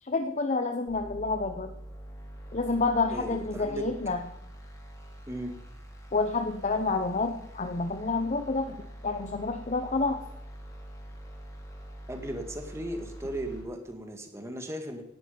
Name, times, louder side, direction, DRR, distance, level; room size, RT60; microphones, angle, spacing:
voice 1, 0.0-1.7 2.5-4.2 6.1-10.2, left 3 dB, 35° left, 6 dB, 0.9 m, -29 dB
sound 1, 0.9-13.6, equal, 15° left, 3.9 m, -45 dB
voice 2, 3.1-3.9 5.3-5.5 12.1-15.0, right 1 dB, 15° right, 4 dB, 2.1 m, -36 dB
18.0 x 11.0 x 5.3 m, 0.80 s
head